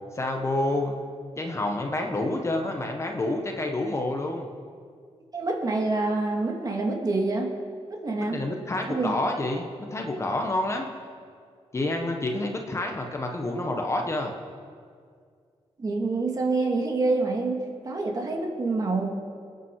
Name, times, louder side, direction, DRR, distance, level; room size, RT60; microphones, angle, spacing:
voice 1, 0.1-1.0 1.4-4.5 8.3-9.6 9.9-10.9 11.7-14.3, left 2 dB, 25° left, 2 dB, 1.3 m, -28 dB
voice 2, 5.3-7.5 7.9-8.4 8.9-9.2 15.8-19.1, right 3 dB, 35° right, 1 dB, 2.1 m, -26 dB
26.5 x 9.4 x 4.8 m, 2.1 s
wide cardioid pair, 155°, 11 cm